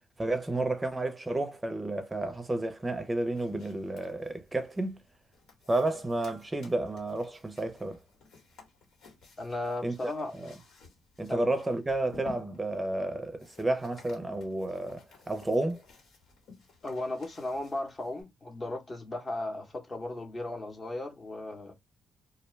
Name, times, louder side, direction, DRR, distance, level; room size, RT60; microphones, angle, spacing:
voice 1, 0.2-5.0 5.7-8.0 9.8-10.0 10.3-10.5 11.2-15.8, right 2 dB, 15° right, 0.6 m, -31 dB
sound 1, 2.9-18.2, left 3 dB, 75° left, 1.3 m, -55 dB
voice 2, 9.4-10.3 11.3-11.4 16.8-21.7, left 2 dB, 30° left, 0.9 m, -36 dB
2.3 x 2.2 x 3.1 m
cardioid pair, 90°, 0 cm